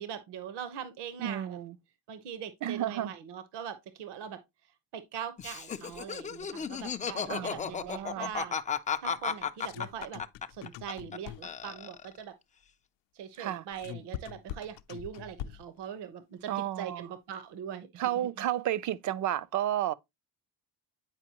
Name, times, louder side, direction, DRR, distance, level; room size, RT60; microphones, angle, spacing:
voice 1, 0.0-1.6 2.1-4.4 4.9-8.6 9.0-10.2 10.5-12.3 13.1-18.1, right 8 dB, 70° right, 1.0 m, -41 dB
voice 2, 1.2-1.8 2.6-3.1 7.3-8.3 13.4-13.6 16.5-17.1 18.0-19.9, right 12 dB, 45° right, 0.5 m, -32 dB
Laughter, 5.4-11.2 11.4-12.2, left 6 dB, 20° left, 0.3 m, -34 dB
sound 1, 9.2-11.7 13.3-15.8, left 11 dB, 85° left, 0.6 m, -43 dB
8.9 x 5.2 x 2.8 m
cardioid pair, 160°, 42 cm